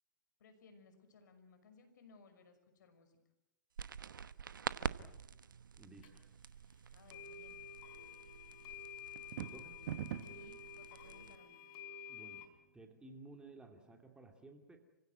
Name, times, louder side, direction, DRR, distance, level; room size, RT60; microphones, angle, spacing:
voice 1, 0.4-3.2 6.9-7.6 10.3-11.6, left 4 dB, 60° left, 8 dB, 6.0 m, -62 dB
sound 1, 3.8-11.4, right 7 dB, 80° right, 1.1 m, -47 dB
voice 2, 5.8-6.2 9.4-9.8 12.1-12.5 12.7-14.8, right 3 dB, 10° right, 4 dB, 2.7 m, -56 dB
sound 2, 6.0-6.1 7.1-12.5, left 7 dB, 35° left, 4.7 m, -51 dB
sound 3, 9.2-10.5, right 11 dB, 55° right, 1.6 m, -42 dB
28.5 x 16.5 x 9.4 m, 0.96 s
hypercardioid pair, 125°, 11 cm